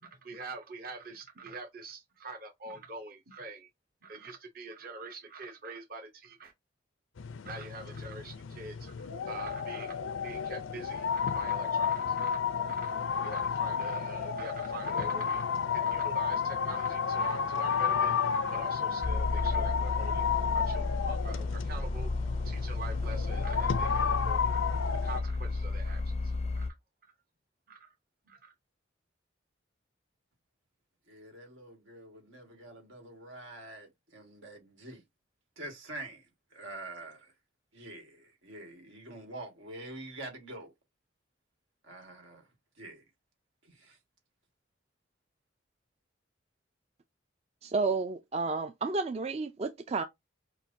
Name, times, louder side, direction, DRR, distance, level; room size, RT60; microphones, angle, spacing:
voice 1, 0.0-3.7 4.0-6.5 7.4-20.2 20.5-22.1 22.4-24.7 25.0-26.7 27.7-27.9 28.3-28.5, right 3 dB, 50° right, 0.9 m, -45 dB
sound 1, 7.2-25.2, left 6 dB, 85° left, 0.5 m, -32 dB
sound 2, 19.0-26.7, left 3 dB, 30° left, 0.4 m, -32 dB
voice 2, 31.1-35.0 35.6-37.3 37.7-40.7 41.8-43.0 43.6-44.0, right 2 dB, 90° right, 2.0 m, -46 dB
voice 3, 47.6-50.0, right 4 dB, 30° right, 0.3 m, -31 dB
5.9 x 2.5 x 2.7 m
head